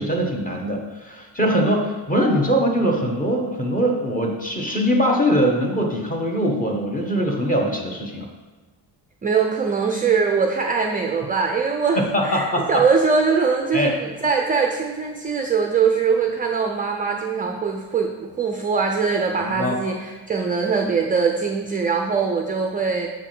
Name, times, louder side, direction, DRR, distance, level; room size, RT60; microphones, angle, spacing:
voice 1, 0.0-8.3 12.0-12.8 13.7-13.9 19.4-19.8, equal, 20° left, 1 dB, 1.1 m, -22 dB
voice 2, 9.2-23.1, right 5 dB, 20° right, 2 dB, 0.4 m, -22 dB
7.6 x 3.4 x 6.0 m, 1.3 s
cardioid pair, 130°, 45 cm